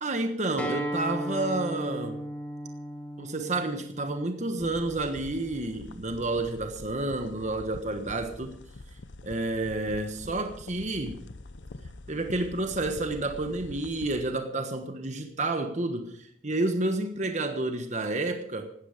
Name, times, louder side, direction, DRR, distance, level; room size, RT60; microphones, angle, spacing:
voice 1, 0.0-2.3 3.2-8.6 9.2-11.2 12.1-18.7, right 2 dB, 40° right, 6 dB, 1.3 m, -30 dB
Acoustic guitar, 0.6-5.8, right 1 dB, 10° left, 1.8 m, -36 dB
sound 1, 4.6-14.3, left 2 dB, 90° left, 0.9 m, -45 dB
17.0 x 12.5 x 5.1 m, 0.66 s
head